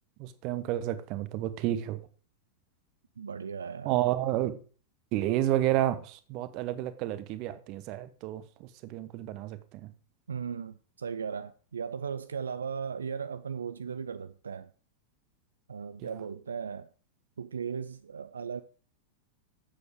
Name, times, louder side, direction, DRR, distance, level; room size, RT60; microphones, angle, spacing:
voice 1, 0.2-2.0 3.8-4.6 5.1-9.9 16.0-16.1, right 13 dB, 40° right, 1.1 m, -30 dB
voice 2, 3.2-4.0 10.3-14.7 15.7-16.9 17.4-18.6, right 6 dB, 70° right, 0.5 m, -37 dB
11.5 x 8.6 x 4.9 m
figure-of-eight pair, 90°, 0 cm